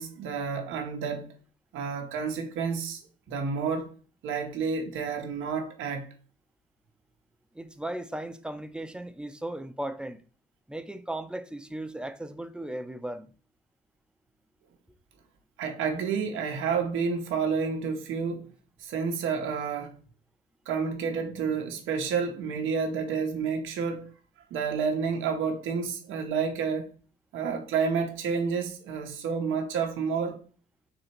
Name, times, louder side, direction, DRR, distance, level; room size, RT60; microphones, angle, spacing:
voice 1, 0.0-1.3 1.7-3.0 3.3-3.9 4.2-6.1 15.6-18.5 18.8-20.0 20.7-24.1 24.5-26.9 27.3-30.4, right 5 dB, 85° right, 0.8 m, -30 dB
voice 2, 7.5-10.2 10.7-13.3, right 1 dB, 5° right, 0.5 m, -36 dB
3.9 x 2.9 x 4.4 m
cardioid pair, 90°, 20 cm